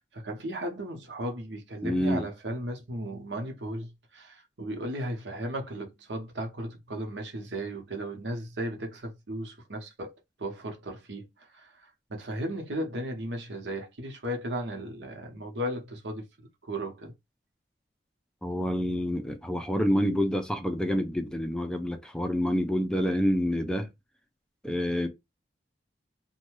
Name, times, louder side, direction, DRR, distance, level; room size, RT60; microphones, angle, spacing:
voice 1, 0.0-10.1 10.4-11.3 11.5-11.7 12.1-16.3 16.6-17.1, right 1 dB, 80° right, 0.9 m, -35 dB
voice 2, 1.8-2.3 18.4-23.9 24.6-25.1, equal, 5° left, 0.4 m, -27 dB
2.7 x 2.2 x 3.0 m
head